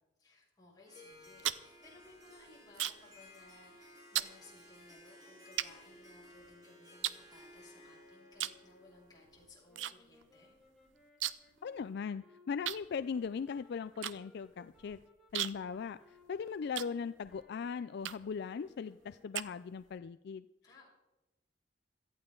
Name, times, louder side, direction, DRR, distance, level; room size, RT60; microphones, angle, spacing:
voice 1, 0.2-10.6 20.6-20.9, left 2 dB, 20° left, -5 dB, 6.5 m, -60 dB
Harp, 0.9-9.6, left 1 dB, 20° right, 3.3 m, -57 dB
sound 1, 1.1-3.2 3.5-3.8 4.1-4.4 5.0-5.1 5.6-6.5 7.0-7.9 8.3-8.7 8.9-9.9 10.2-10.3 10.6-11.6 11.9-12.0 12.6-17.4 18.0-18.4 18.9-20.0, right 12 dB, 80° right, 0.6 m, -39 dB
sound 2, 9.7-19.7, left 1 dB, ahead, 3.8 m, -65 dB
voice 2, 11.6-15.0 15.3-20.5, left 6 dB, 60° left, 13 dB, 0.4 m, -39 dB
17.5 x 14.0 x 3.8 m, 1.0 s
head